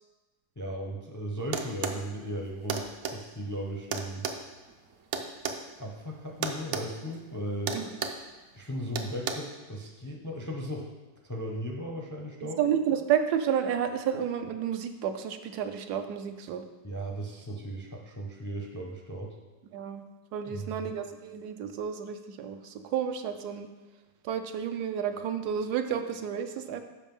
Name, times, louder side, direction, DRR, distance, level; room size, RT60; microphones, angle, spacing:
voice 1, 0.6-4.3 5.8-7.8 8.5-10.9 11.2-12.6 16.8-19.3 20.5-20.9, equal, 30° left, 0 dB, 0.3 m, -36 dB
sound 1, 1.5-2.0 2.7-3.2 3.9-5.6 6.4-6.9 7.1-7.3 7.7-8.2 9.0-9.3, right 6 dB, 60° right, 0.8 m, -32 dB
voice 2, 12.4-16.6 19.7-20.0 20.3-23.7 24.2-26.8, right 8 dB, 75° right, 7 dB, 1.1 m, -31 dB
7.4 x 5.4 x 5.4 m, 1.2 s
omnidirectional pair, 1.8 m